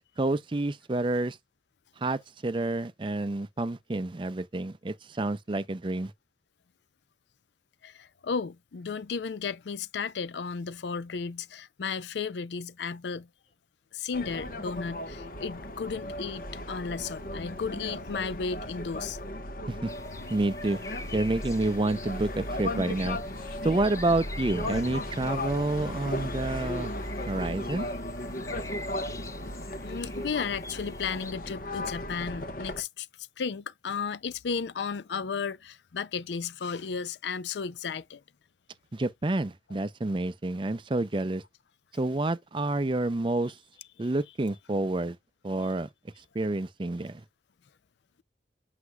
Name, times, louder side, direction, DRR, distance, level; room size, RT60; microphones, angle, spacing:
voice 1, 0.2-1.4 2.0-6.1 19.7-19.9 20.3-20.8 21.1-23.2 23.6-26.9 27.3-27.9 38.9-41.4 41.9-43.6 44.0-45.2 45.4-45.9 46.3-47.2, right 2 dB, 25° right, 0.5 m, -29 dB
voice 2, 7.8-13.3 13.9-19.2 29.8-38.2, left 5 dB, 75° left, 0.5 m, -34 dB
sound 1, 14.1-32.8, left 1 dB, 50° left, 1.1 m, -36 dB
sound 2, 19.9-31.3, left 3 dB, 15° left, 0.8 m, -47 dB
8.0 x 5.8 x 2.3 m
head